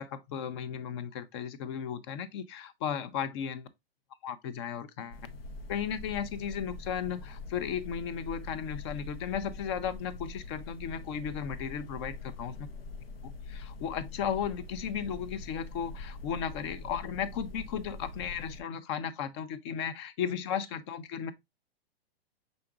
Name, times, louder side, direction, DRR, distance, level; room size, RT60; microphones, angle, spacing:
voice 1, 0.0-3.7 4.2-5.2 5.7-12.7 13.2-21.3, left 8 dB, 30° left, 0.5 m, -35 dB
sound 1, 5.1-18.6, left 3 dB, 70° left, 0.8 m, -44 dB
5.7 x 3.9 x 2.2 m
figure-of-eight pair, 120°, 30 cm